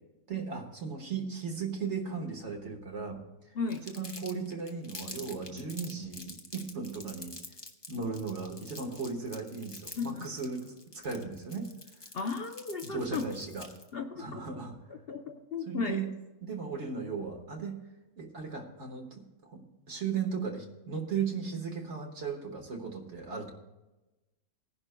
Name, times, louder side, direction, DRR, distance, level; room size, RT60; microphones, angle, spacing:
voice 1, 0.3-3.2 3.8-7.4 7.9-11.7 12.8-13.7 14.1-14.7 15.7-16.1 16.4-17.8 18.2-23.5, right 5 dB, 55° right, 3 dB, 1.7 m, -36 dB
voice 2, 3.5-3.9 10.0-10.3 12.1-13.3 13.9-14.6 15.1-16.1, left 5 dB, 50° left, 5 dB, 0.9 m, -35 dB
Crumpling crinkling, 3.7-13.9, left 2 dB, 25° left, 0.8 m, -47 dB
19.5 x 10.5 x 2.2 m, 1.1 s
omnidirectional pair, 1.4 m